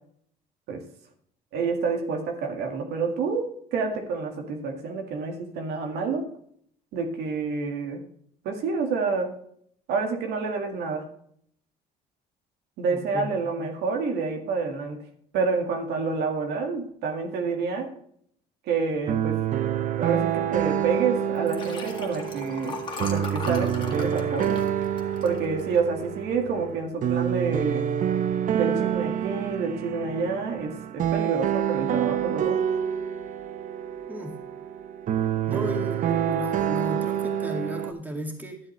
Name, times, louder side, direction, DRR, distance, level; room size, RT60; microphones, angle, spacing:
voice 1, 1.5-3.5 3.7-6.2 6.9-8.0 8.4-9.3 9.9-11.0 12.8-15.0 15.3-17.9 18.7-19.4 20.0-24.6 25.2-27.8 28.5-32.6, right 4 dB, 80° right, 3 dB, 1.9 m, -28 dB
voice 2, 12.9-13.3 34.1-34.4 35.5-38.6, equal, 10° right, 2 dB, 2.2 m, -34 dB
sound 1, 19.1-37.9, right 10 dB, 50° right, 0.7 m, -27 dB
Liquid, 21.4-26.0 26.5-26.8 27.0-27.1, left 4 dB, 30° left, 1.9 m, -38 dB
12.0 x 7.7 x 3.2 m, 0.65 s
cardioid pair, 110°, 17 cm